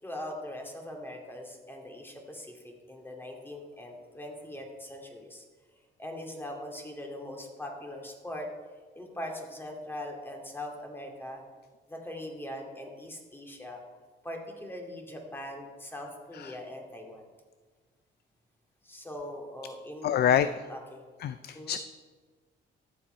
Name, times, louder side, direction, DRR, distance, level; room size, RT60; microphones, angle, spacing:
voice 1, 0.0-5.4 6.0-8.5 9.0-11.4 11.9-13.8 14.2-17.3 18.8-20.2 20.7-21.0 21.5-21.8, left 1 dB, 10° left, 1 dB, 2.3 m, -41 dB
voice 2, 20.0-20.5 21.2-21.8, left 9 dB, 55° left, 12 dB, 0.4 m, -25 dB
13.0 x 7.6 x 4.4 m, 1.5 s
cardioid pair, 90°, 20 cm